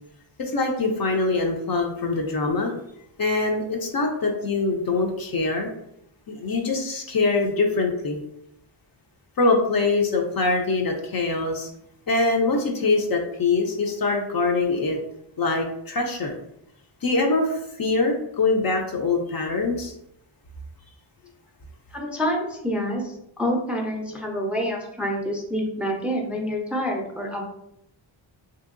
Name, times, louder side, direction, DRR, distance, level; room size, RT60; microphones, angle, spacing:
voice 1, 0.4-2.7 3.2-5.7 6.3-8.2 9.4-11.7 12.1-15.0 15.4-16.3 17.0-19.9, left 3 dB, 50° left, 2 dB, 0.5 m, -23 dB
voice 2, 21.9-27.4, equal, 5° right, 0 dB, 0.5 m, -27 dB
2.9 x 2.7 x 2.5 m, 0.78 s
cardioid pair, 75°, 49 cm